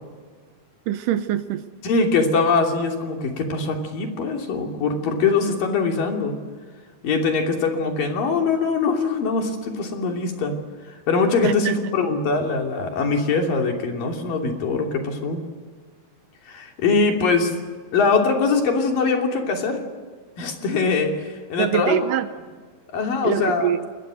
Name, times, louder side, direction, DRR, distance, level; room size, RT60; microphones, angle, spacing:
voice 1, 0.9-1.6 11.4-11.7 21.6-22.3 23.2-23.8, right 10 dB, 75° right, 11 dB, 2.3 m, -23 dB
voice 2, 1.8-6.3 7.0-10.5 11.1-15.4 16.5-17.5 17.9-19.8 20.4-22.0 22.9-23.7, left 4 dB, 70° left, 2 dB, 4.6 m, -22 dB
29.0 x 21.0 x 6.4 m, 1.5 s
omnidirectional pair, 4.2 m